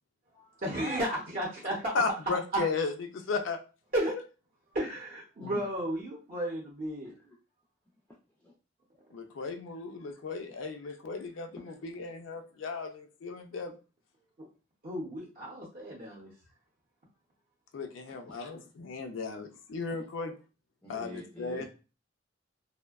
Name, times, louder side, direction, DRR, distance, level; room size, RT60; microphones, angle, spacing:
voice 1, 0.3-2.0 2.5-2.6 3.9-4.1 4.7-7.1 14.8-16.3, right 1 dB, 45° right, -4 dB, 0.6 m, -33 dB
voice 2, 1.9-3.6 9.1-11.5 11.9-13.7 17.7-20.3 20.9-21.6, left 4 dB, 85° left, 6 dB, 0.4 m, -35 dB
voice 3, 7.0-7.4 8.4-8.5 8.9-9.1 9.4-9.5 10.0-10.2 10.5-10.9 11.3-12.2 14.2-14.3 17.8-18.5 19.3-19.4 19.9-20.1 20.8-21.6, left 1 dB, 5° left, -3 dB, 0.4 m, -49 dB
2.5 x 2.1 x 2.3 m, 0.34 s
head